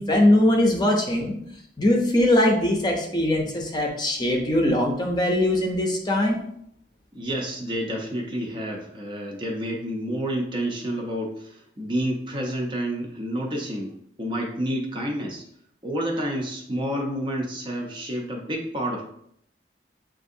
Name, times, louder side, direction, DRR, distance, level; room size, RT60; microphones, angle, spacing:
voice 1, 0.0-1.4 1.8-6.4, left 1 dB, 25° left, 1 dB, 0.6 m, -21 dB
voice 2, 7.1-15.4 15.8-19.0, equal, 25° right, 1 dB, 0.6 m, -29 dB
7.3 x 2.5 x 2.6 m, 0.69 s
head